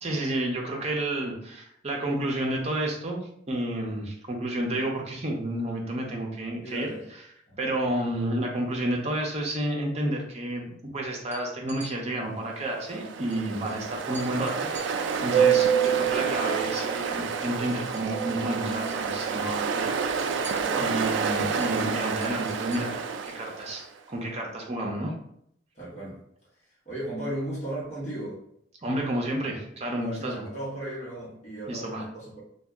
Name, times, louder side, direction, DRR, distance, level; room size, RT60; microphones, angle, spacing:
voice 1, 0.0-6.9 7.6-20.3 20.8-23.0 23.3-25.1 28.8-30.4 31.7-32.0, right 1 dB, 35° right, 0 dB, 0.6 m, -31 dB
voice 2, 6.6-7.1 7.5-7.7 20.5-21.7 25.7-26.2 26.8-28.4 30.0-32.4, right 1 dB, 40° left, -7 dB, 1.1 m, -36 dB
sound 1, 11.2-11.9 13.3-13.4 13.7-13.8 14.1-16.9 17.2-18.4 18.7-19.0 19.3-23.4, equal, 10° left, 0.8 m, -48 dB
Ocean, 12.7-23.8, right 6 dB, 70° right, 0.3 m, -27 dB
2.6 x 2.3 x 3.4 m, 0.71 s
head